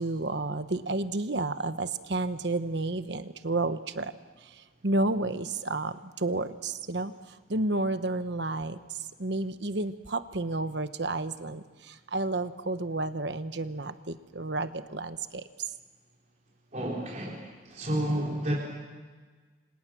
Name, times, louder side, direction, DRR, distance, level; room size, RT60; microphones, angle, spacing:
voice 1, 0.0-4.1 4.8-7.1 7.5-8.8 9.2-15.4, right 2 dB, 60° right, 11 dB, 1.1 m, -31 dB
voice 2, 16.7-17.4 17.7-18.6, right 1 dB, 40° right, -3 dB, 3.9 m, -30 dB
29.5 x 26.0 x 6.2 m, 1.4 s
head